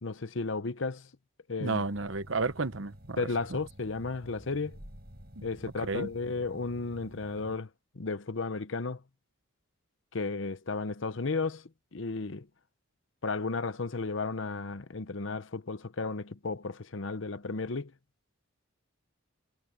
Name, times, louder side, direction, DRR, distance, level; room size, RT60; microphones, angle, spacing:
voice 1, 0.0-1.1 1.5-1.8 3.2-4.8 5.4-7.7 7.9-9.0 10.1-12.5 13.2-17.9, left 3 dB, 60° left, 0.8 m, -34 dB
voice 2, 1.6-3.2 5.4-5.5 5.9-6.1, right 3 dB, 65° right, 1.0 m, -32 dB
sound 1, 1.8-7.6, equal, 45° right, 7.8 m, -51 dB
head